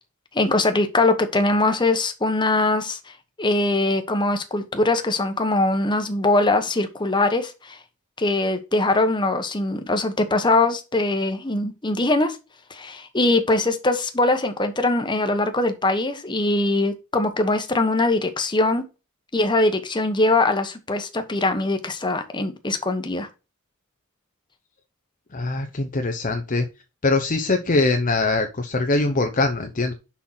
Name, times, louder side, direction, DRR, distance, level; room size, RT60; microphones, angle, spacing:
voice 1, 0.3-3.0 3.4-7.8 8.2-12.4 12.7-18.8 19.3-23.3, left 2 dB, 20° left, 1.1 m, -22 dB
voice 2, 25.3-26.7 27.0-29.9, left 3 dB, 40° left, 0.8 m, -22 dB
6.4 x 5.7 x 5.6 m
head